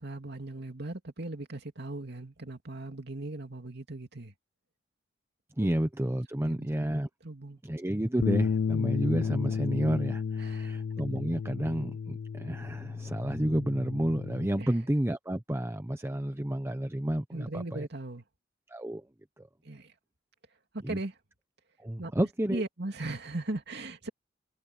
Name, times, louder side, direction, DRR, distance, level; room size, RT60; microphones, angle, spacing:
voice 1, 0.0-4.3 6.4-6.9 7.2-7.6 10.4-10.8 14.6-14.7 17.3-18.2 19.6-19.9 20.7-21.1 22.0-22.1 22.5-24.1, right 2 dB, 60° right, 2.7 m, -38 dB
voice 2, 5.6-7.1 7.6-17.9 18.7-19.1 19.4-19.5 20.8-21.0 21.8-22.6, right 1 dB, 15° right, 0.8 m, -31 dB
Bass guitar, 8.2-14.5, left 6 dB, 75° left, 0.4 m, -32 dB
head